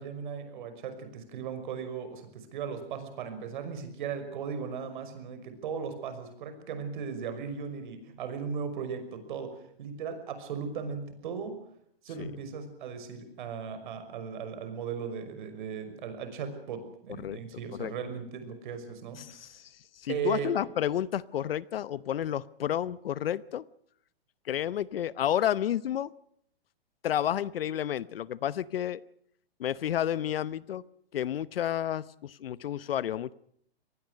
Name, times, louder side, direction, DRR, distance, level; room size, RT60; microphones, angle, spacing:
voice 1, 0.0-11.5 12.0-19.5 20.1-20.5, right 6 dB, 50° right, 9 dB, 5.8 m, -37 dB
voice 2, 19.2-23.6 24.4-26.1 27.0-29.0 29.6-30.8 31.1-33.3, left 10 dB, 70° left, 19 dB, 0.9 m, -31 dB
26.0 x 19.5 x 6.4 m, 0.68 s
hypercardioid pair, 160°, 31 cm